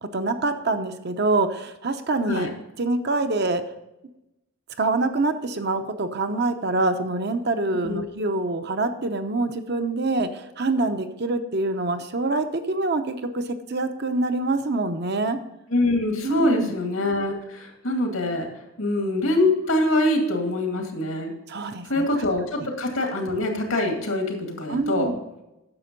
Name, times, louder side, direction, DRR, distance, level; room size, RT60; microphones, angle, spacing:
voice 1, 0.0-2.5 2.8-3.6 4.8-15.4 16.2-16.7 21.5-22.1 24.7-25.2, right 2 dB, 50° right, 8 dB, 0.8 m, -25 dB
voice 2, 15.7-18.5 18.8-21.3 21.9-25.1, left 1 dB, 85° left, 2 dB, 2.2 m, -24 dB
9.7 x 6.9 x 5.2 m, 0.92 s
head